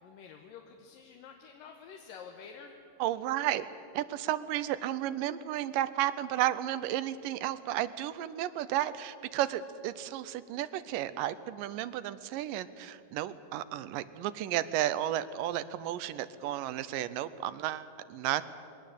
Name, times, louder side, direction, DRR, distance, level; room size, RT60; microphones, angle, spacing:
voice 1, 0.0-2.8, left 6 dB, 80° left, 3 dB, 2.8 m, -49 dB
voice 2, 3.0-3.7 3.9-18.4, right 13 dB, 80° right, 14 dB, 2.3 m, -33 dB
21.5 x 18.0 x 8.2 m, 2.4 s
omnidirectional pair, 3.9 m